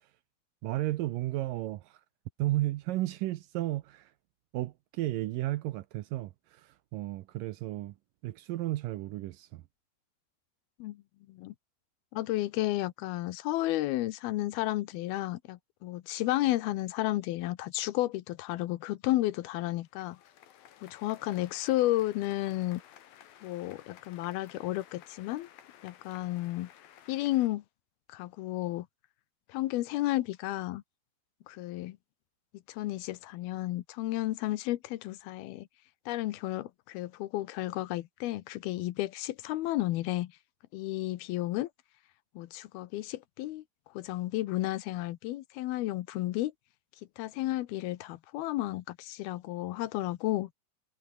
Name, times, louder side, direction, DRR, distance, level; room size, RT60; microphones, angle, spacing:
voice 1, 0.6-1.9 2.4-4.1 4.5-6.3 6.9-7.9 8.2-9.6, right 16 dB, 75° right, 2.2 m, -33 dB
voice 2, 12.1-20.2 20.8-22.8 23.4-25.5 25.8-26.7 27.1-27.6 28.1-28.9 29.5-30.8 31.5-32.0 32.7-35.7 36.1-40.3 40.7-41.7 42.4-43.6 43.9-46.5 47.2-50.5, left 16 dB, 85° left, 2.8 m, -32 dB
sound 1, 19.7-27.5, left 11 dB, 70° left, 3.5 m, -55 dB
omnidirectional pair, 4.5 m